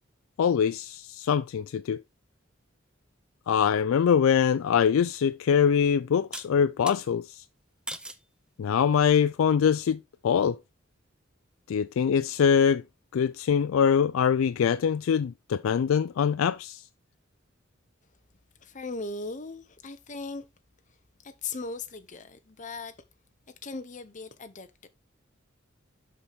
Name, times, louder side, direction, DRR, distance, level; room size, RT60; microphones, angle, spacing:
voice 1, 0.4-2.0 3.5-7.4 8.6-10.6 11.7-12.8 13.1-16.8, left 7 dB, 80° left, 0.3 m, -23 dB
sound 1, 6.3-7.0 7.9-8.3 8.9-9.3, right 1 dB, 5° right, 0.5 m, -40 dB
voice 2, 18.6-20.5 21.2-23.0 23.6-24.9, left 3 dB, 40° left, 0.8 m, -38 dB
6.8 x 5.8 x 3.5 m
head